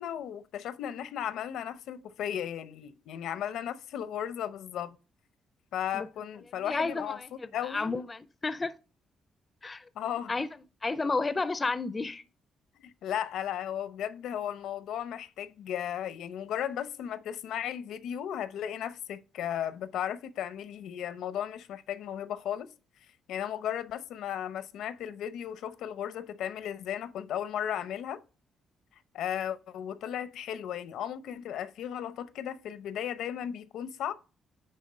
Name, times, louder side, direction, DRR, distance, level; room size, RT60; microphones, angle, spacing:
voice 1, 0.0-5.0 5.7-7.2 7.5-8.0 9.9-10.3 12.8-22.7 23.3-28.2 29.1-34.1, left 10 dB, 80° left, 0.7 m, -35 dB
voice 2, 6.6-8.7 9.6-9.9 10.3-10.5 10.8-12.2, left 3 dB, 20° left, 0.4 m, -32 dB
9.8 x 3.6 x 5.0 m
cardioid pair, 170°, 0 cm